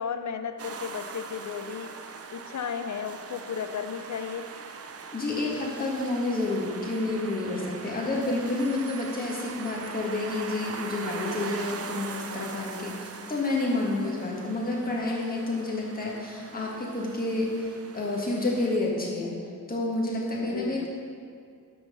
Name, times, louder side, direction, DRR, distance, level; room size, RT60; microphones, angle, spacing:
voice 1, 0.0-1.9 2.3-4.4 20.5-20.9, left 7 dB, 55° left, 8 dB, 0.4 m, -34 dB
sound 1, 0.6-18.8, right 5 dB, 45° right, 0.5 m, -41 dB
voice 2, 5.1-19.3 19.7-20.9, left 2 dB, 25° left, -4 dB, 1.7 m, -29 dB
11.5 x 3.9 x 6.8 m, 2.2 s
wide cardioid pair, 180°, 35 cm